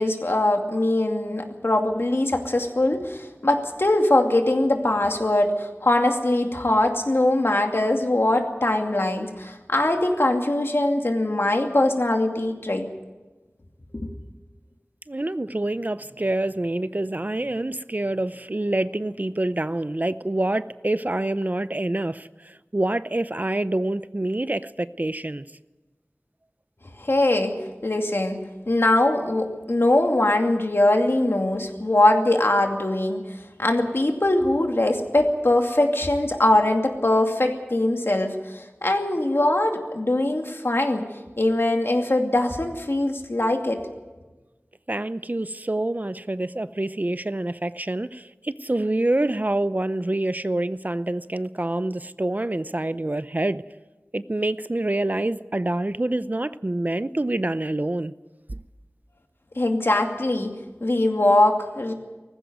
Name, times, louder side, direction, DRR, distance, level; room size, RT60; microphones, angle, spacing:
voice 1, 0.0-12.9 13.9-14.1 27.0-27.5 27.8-33.2 33.6-41.1 41.4-43.8 59.6-60.5 60.8-61.9, left 1 dB, 60° left, 3 dB, 2.5 m, -22 dB
voice 2, 15.1-25.4 44.9-53.6 54.1-58.1 58.5-58.6, right 1 dB, 40° right, 14 dB, 0.6 m, -26 dB
19.0 x 15.5 x 9.4 m, 1.2 s
wide cardioid pair, 45°, 4 cm